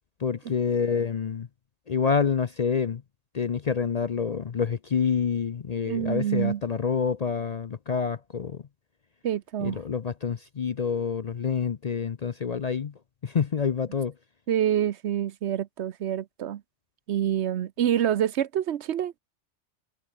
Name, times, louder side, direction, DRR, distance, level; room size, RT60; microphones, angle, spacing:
voice 1, 0.2-1.5 1.9-3.0 3.3-8.6 9.6-12.9 13.2-14.1, left 6 dB, 45° left, 0.6 m, -27 dB
voice 2, 5.8-6.6 9.2-9.8 14.5-16.6 17.1-19.2, right 10 dB, 70° right, 1.0 m, -27 dB
omnidirectional pair, 1.2 m